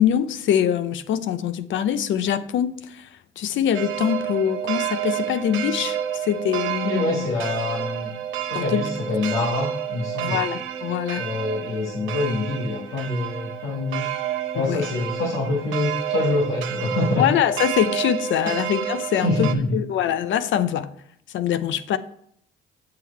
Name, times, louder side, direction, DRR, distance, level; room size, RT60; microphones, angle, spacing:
voice 1, 0.0-3.1 3.4-7.3 8.5-8.9 10.2-11.3 14.5-14.9 17.1-20.9 21.3-22.0, left 9 dB, 70° left, 13 dB, 0.6 m, -23 dB
sound 1, 3.7-19.5, right 10 dB, 80° right, 0.7 m, -30 dB
voice 2, 6.8-8.1 8.5-10.4 11.1-14.1 14.5-17.3 18.4-18.5 19.1-19.8, left 2 dB, 85° left, -1 dB, 1.4 m, -25 dB
7.5 x 6.4 x 4.4 m, 0.70 s
cardioid pair, 90°, 20 cm